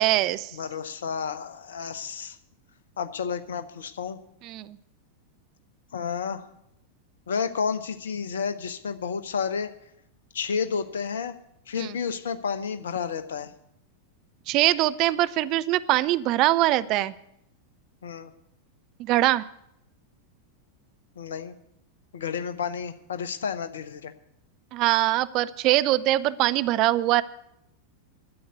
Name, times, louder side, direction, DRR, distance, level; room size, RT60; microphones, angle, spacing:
voice 1, 0.0-0.5 4.4-4.8 11.8-11.9 14.5-17.1 19.0-19.5 24.7-27.2, right 15 dB, 40° right, 15 dB, 0.5 m, -22 dB
voice 2, 0.5-2.4 3.0-4.2 5.9-6.5 7.3-9.7 10.3-11.3 11.7-13.5 18.0-18.3 21.2-21.5 22.1-24.1, left 6 dB, 65° left, 10 dB, 0.9 m, -31 dB
12.0 x 8.0 x 8.1 m, 0.78 s
figure-of-eight pair, 90°, 0 cm